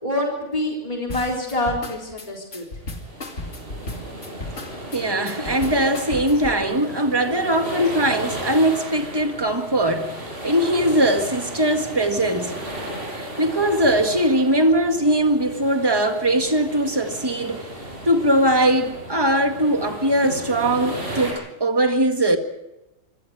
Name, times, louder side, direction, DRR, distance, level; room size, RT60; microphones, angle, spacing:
voice 1, 0.0-2.6, left 1 dB, 30° left, 4.0 m, -26 dB
sound 1, 1.1-6.6, left 2 dB, 85° left, 2.8 m, -34 dB
sound 2, 2.7-21.3, right 1 dB, 50° right, 8.1 m, -35 dB
voice 2, 4.9-10.2 10.4-12.5 13.1-17.6 18.0-22.4, right 1 dB, 20° right, 1.9 m, -20 dB
26.0 x 24.0 x 4.9 m
omnidirectional pair, 1.2 m